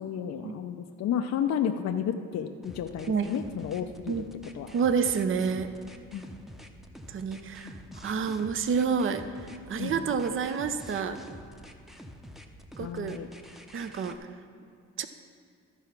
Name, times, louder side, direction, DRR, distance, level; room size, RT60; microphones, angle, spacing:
voice 1, 0.0-4.1 4.5-4.7 6.1-6.2 7.6-7.7 9.8-10.0 12.8-13.3, left 8 dB, 60° left, 6 dB, 0.5 m, -32 dB
sound 1, 2.6-14.2, equal, ahead, 0.7 m, -47 dB
voice 2, 4.7-5.7 7.1-11.2 12.8-13.2 13.7-14.2 15.0-15.1, right 6 dB, 45° right, 10 dB, 0.6 m, -29 dB
13.5 x 4.7 x 5.8 m, 2.4 s
cardioid pair, 90°, 30 cm